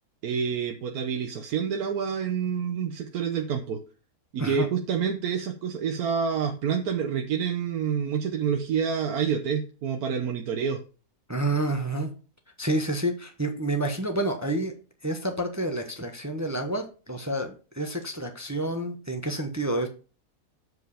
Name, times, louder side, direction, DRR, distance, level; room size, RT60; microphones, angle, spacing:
voice 1, 0.2-3.8 4.3-10.8, right 7 dB, 65° right, 4 dB, 1.3 m, -28 dB
voice 2, 11.3-12.1 12.6-14.7 15.0-19.9, right 1 dB, 15° right, 5 dB, 0.8 m, -29 dB
7.9 x 4.9 x 4.9 m, 0.35 s
omnidirectional pair, 1.8 m